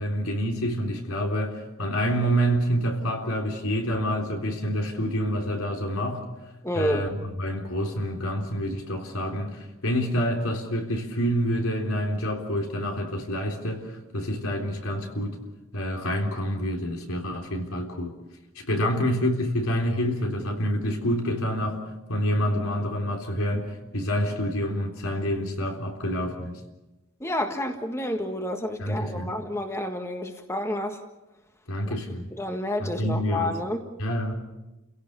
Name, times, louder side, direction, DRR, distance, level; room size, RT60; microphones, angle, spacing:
voice 1, 0.0-6.2 6.7-15.4 15.7-18.1 18.6-21.8 22.1-26.6 28.8-29.3 31.7-32.3 32.8-33.6 34.0-34.3, equal, 85° left, 2 dB, 3.7 m, -27 dB
voice 2, 6.6-7.0 18.8-18.9 27.2-31.0 32.4-33.8, left 1 dB, 15° left, 5 dB, 1.6 m, -29 dB
29.5 x 17.0 x 6.8 m, 1.0 s
head